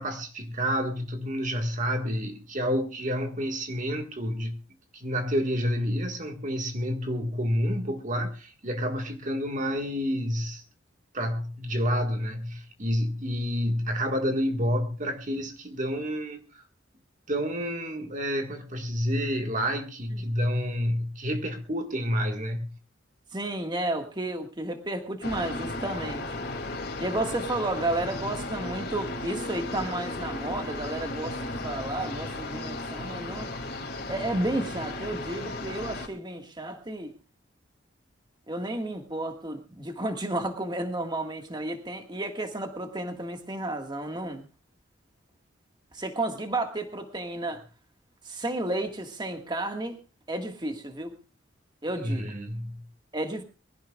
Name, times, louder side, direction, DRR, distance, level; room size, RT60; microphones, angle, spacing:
voice 1, 0.0-4.6 4.9-10.6 11.1-16.6 17.3-22.7 52.0-52.8, equal, 40° right, 1.7 m, -29 dB
voice 2, 23.3-26.2 27.0-33.5 34.1-37.1 38.5-44.4 45.9-47.6 48.2-50.0 50.3-51.1 51.8-52.3 53.1-53.4, right 1 dB, 25° right, 1.7 m, -32 dB
sound 1, 25.2-36.1, left 2 dB, 55° left, 2.6 m, -35 dB
23.5 x 16.0 x 2.4 m
head